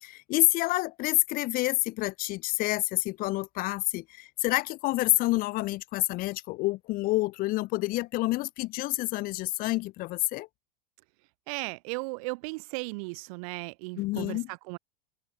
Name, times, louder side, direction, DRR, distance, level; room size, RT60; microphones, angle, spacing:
voice 1, 0.0-10.5 14.0-14.5, left 20 dB, 45° left, 0.7 m, -28 dB
voice 2, 11.5-14.8, right 28 dB, 60° right, 0.6 m, -36 dB
open air
hypercardioid pair, 105°, 21 cm